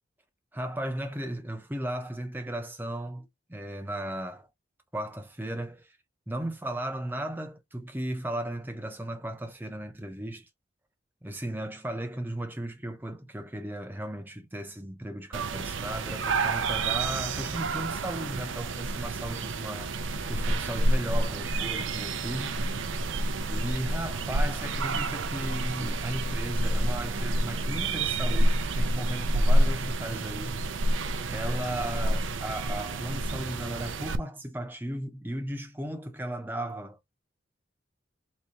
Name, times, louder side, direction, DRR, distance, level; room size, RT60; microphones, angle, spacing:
voice 1, 0.5-4.5 4.9-6.0 6.3-10.5 11.2-19.9 20.3-22.6 23.5-30.6 31.3-37.2, right 1 dB, 10° right, 0.9 m, -36 dB
sound 1, 15.3-34.2, right 2 dB, 90° right, 0.7 m, -28 dB
4.1 x 3.5 x 3.0 m
head